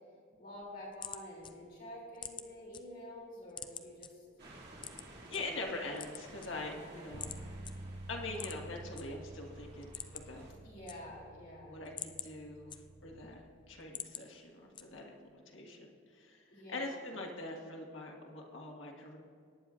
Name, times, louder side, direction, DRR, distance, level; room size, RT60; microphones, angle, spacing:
voice 1, 0.3-4.2 6.4-6.9 10.6-11.8 16.5-17.0, left 1 dB, 45° left, -4 dB, 2.9 m, -48 dB
sound 1, 0.6-2.8 3.2-4.1 4.8-5.4 5.9-6.8 7.2-7.4 7.6-7.7 8.3-9.0 9.4-9.5 9.8-10.4 10.7-11.4 11.7-13.2 13.6-14.2 14.7-15.2, left 8 dB, 25° left, 0.4 m, -45 dB
sound 2, 4.4-10.5, right 2 dB, 55° right, 2.5 m, -55 dB
voice 2, 5.3-7.3 8.1-10.5 11.6-13.4 13.7-19.2, left 2 dB, 80° left, 0 dB, 1.6 m, -43 dB
Bass guitar, 7.1-13.4, right 1 dB, 40° right, 0.6 m, -50 dB
19.0 x 9.4 x 2.5 m, 2.3 s
head